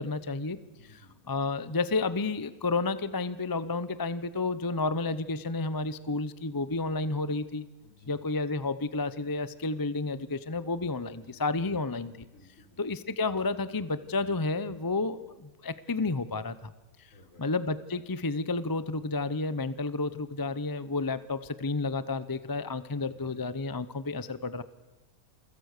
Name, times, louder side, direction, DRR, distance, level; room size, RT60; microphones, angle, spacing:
voice 1, 0.0-0.6 0.9-1.0 1.3-7.7 8.1-12.1 12.8-16.7 17.4-24.6, left 3 dB, 20° left, 15 dB, 0.6 m, -31 dB
voice 2, 0.7-1.1 7.8-8.2 11.2-11.4 12.3-12.8 17.1-17.5 23.0-23.4, left 2 dB, 65° left, 5 dB, 4.7 m, -57 dB
29.0 x 24.5 x 6.7 m, 1.1 s
omnidirectional pair, 1.5 m